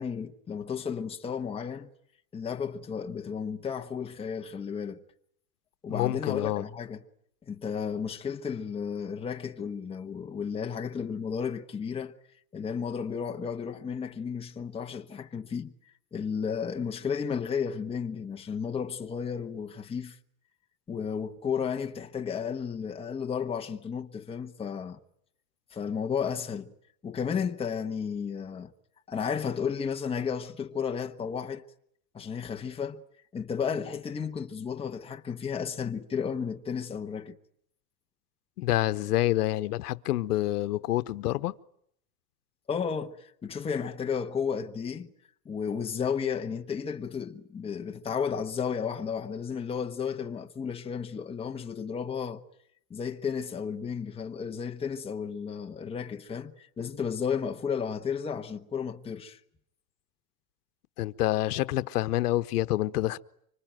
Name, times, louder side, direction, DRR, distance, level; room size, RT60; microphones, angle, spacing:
voice 1, 0.0-1.9 2.3-5.0 5.8-7.0 7.5-12.1 12.5-15.7 16.1-20.2 20.9-25.0 25.7-26.7 27.0-28.7 29.1-31.6 32.1-33.0 33.3-37.4 42.7-45.1 45.4-52.4 52.9-59.4, left 6 dB, 10° left, 1.2 m, -33 dB
voice 2, 5.9-6.6 38.6-41.5 61.0-63.2, left 15 dB, 85° left, 1.0 m, -27 dB
25.5 x 25.5 x 9.1 m
supercardioid pair, 140°, 46 cm